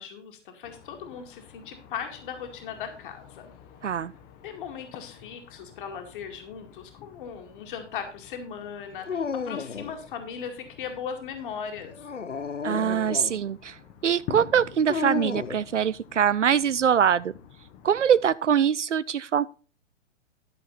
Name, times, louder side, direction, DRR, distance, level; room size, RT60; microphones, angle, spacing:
voice 1, 0.0-3.5 4.4-12.1, left 7 dB, 45° left, 2.2 m, -38 dB
sound 1, 0.6-18.4, left 9 dB, 25° left, 1.1 m, -48 dB
Dog, 9.0-10.0 11.9-13.4 14.9-15.7, left 5 dB, 90° left, 0.6 m, -32 dB
voice 2, 12.6-13.8 14.0-17.3 17.8-19.4, right 8 dB, 80° right, 0.5 m, -23 dB
13.0 x 6.8 x 4.1 m
figure-of-eight pair, 115°, 35 cm